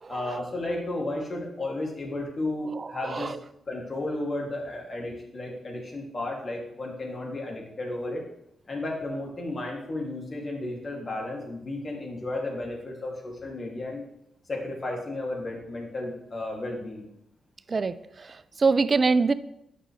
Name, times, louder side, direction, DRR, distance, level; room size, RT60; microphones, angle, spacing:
voice 1, 0.1-3.3 3.7-8.2 8.7-14.0 14.5-17.0, left 2 dB, 45° left, -1 dB, 2.5 m, -33 dB
voice 2, 2.8-3.4 17.7-19.3, right 4 dB, 45° right, 14 dB, 0.4 m, -25 dB
9.0 x 5.9 x 3.3 m, 0.78 s
hypercardioid pair, 40°, 0 cm